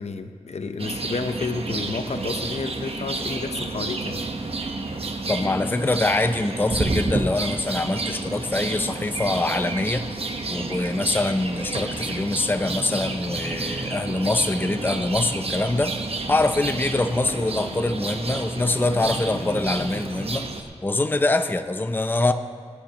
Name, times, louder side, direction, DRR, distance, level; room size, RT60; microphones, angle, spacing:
voice 1, 0.0-4.2, left 4 dB, 70° left, 8 dB, 0.7 m, -31 dB
sound 1, 0.8-20.6, right 3 dB, 60° right, 1.1 m, -30 dB
voice 2, 5.3-10.1 10.5-15.9 16.3-20.4 20.8-22.3, left 2 dB, 15° left, 8 dB, 0.5 m, -24 dB
23.5 x 10.5 x 2.9 m, 2.1 s
wide cardioid pair, 85°, 11 cm